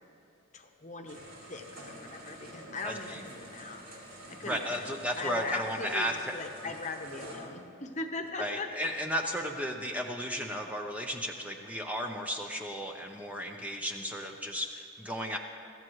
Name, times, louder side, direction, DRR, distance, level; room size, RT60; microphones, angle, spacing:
voice 1, 0.5-1.2 1.5-3.8 4.3-4.9 5.1-8.7, left 3 dB, 35° left, 5 dB, 0.9 m, -39 dB
sound 1, 1.1-7.3, right 1 dB, 85° right, 4.2 m, -48 dB
voice 2, 2.8-3.2 4.4-6.2 6.6-6.7 8.4-15.4, equal, 5° right, 2 dB, 0.6 m, -34 dB
22.0 x 15.0 x 3.1 m, 2.7 s
head